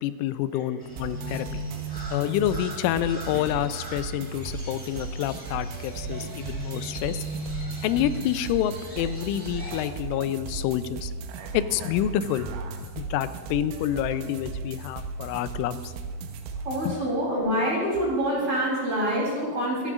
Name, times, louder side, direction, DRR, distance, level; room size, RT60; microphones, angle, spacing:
voice 1, 0.0-1.6 2.1-7.2 7.8-11.1 11.5-12.5 12.8-15.9 16.9-17.0, left 11 dB, 90° left, 12 dB, 3.0 m, -28 dB
Crow, 0.8-9.9, right 1 dB, 10° right, 1.6 m, -38 dB
sound 1, 1.0-17.0, right 3 dB, 85° right, 3.4 m, -36 dB
voice 2, 16.6-19.9, equal, 30° right, -5 dB, 3.7 m, -26 dB
24.5 x 12.0 x 2.5 m, 1.5 s
omnidirectional pair, 5.5 m